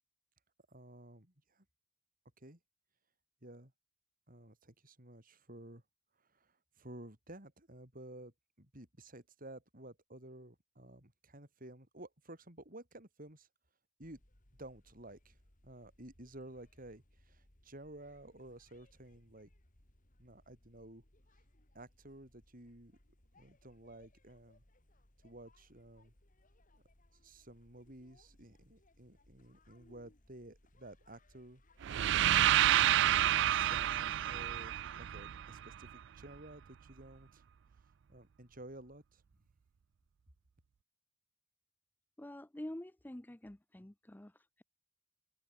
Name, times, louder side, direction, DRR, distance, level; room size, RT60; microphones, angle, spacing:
voice 1, 0.7-1.6 2.4-2.6 3.4-3.7 4.3-5.8 6.2-13.5 14.0-14.2 14.6-15.4 15.6-19.5 20.2-21.0 21.7-23.0 23.4-24.6 25.2-26.1 26.7-26.8 27.2-31.6 32.9-37.4 38.1-39.2, right 1 dB, 45° right, 6.2 m, -53 dB
sound 1, 14.0-32.6, left 1 dB, 45° left, 2.8 m, -67 dB
sound 2, 31.8-35.9, right 12 dB, 65° right, 0.4 m, -29 dB
voice 2, 42.2-44.6, left 1 dB, 10° left, 0.6 m, -47 dB
head